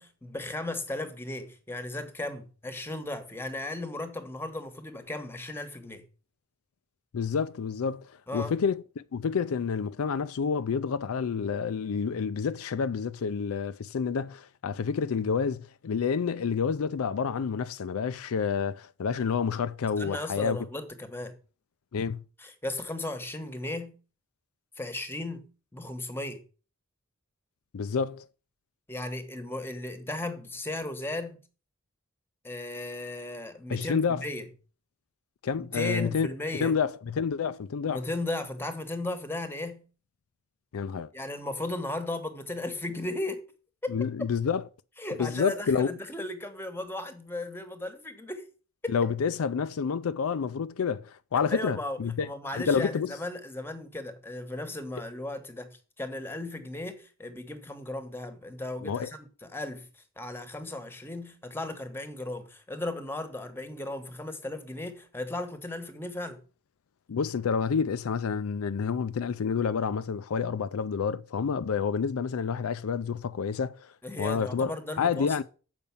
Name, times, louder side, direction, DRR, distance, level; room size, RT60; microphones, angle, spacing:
voice 1, 0.0-6.0 8.3-8.5 20.0-21.3 22.4-23.9 24.8-26.4 28.9-31.4 32.4-34.5 35.6-36.7 37.9-39.8 41.1-43.4 43.8-44.1 45.0-48.4 48.8-49.1 51.5-66.4 74.0-75.3, left 2 dB, 10° left, 1.1 m, -36 dB
voice 2, 7.1-8.8 9.1-20.6 21.9-22.2 27.7-28.3 33.7-34.2 35.4-36.3 36.6-38.0 40.7-41.1 43.9-44.6 45.2-45.9 48.9-52.3 52.5-53.1 58.8-59.1 67.1-73.9 74.2-74.7 75.0-75.4, left 6 dB, 80° left, 0.4 m, -29 dB
7.0 x 5.2 x 7.0 m
head